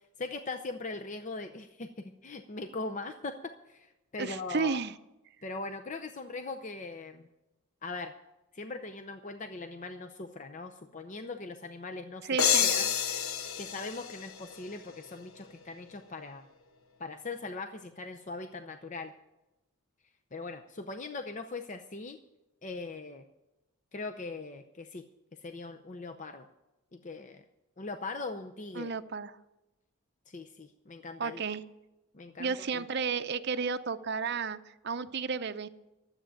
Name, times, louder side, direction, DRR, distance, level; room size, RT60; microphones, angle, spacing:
voice 1, 0.2-4.8 5.4-7.3 7.8-8.1 8.5-12.3 12.6-12.9 13.6-16.5 17.0-19.1 20.3-22.2 22.6-23.3 23.9-26.5 26.9-27.4 27.8-28.9 30.3-31.4 32.1-32.8, left 3 dB, 35° left, 7 dB, 0.6 m, -40 dB
voice 2, 4.2-4.9 12.2-12.7 28.7-29.3 31.2-31.6 32.4-35.7, right 5 dB, 50° right, 10 dB, 0.7 m, -32 dB
sound 1, 12.4-15.1, left 8 dB, 80° left, 0.9 m, -29 dB
12.5 x 8.0 x 8.9 m, 0.99 s
head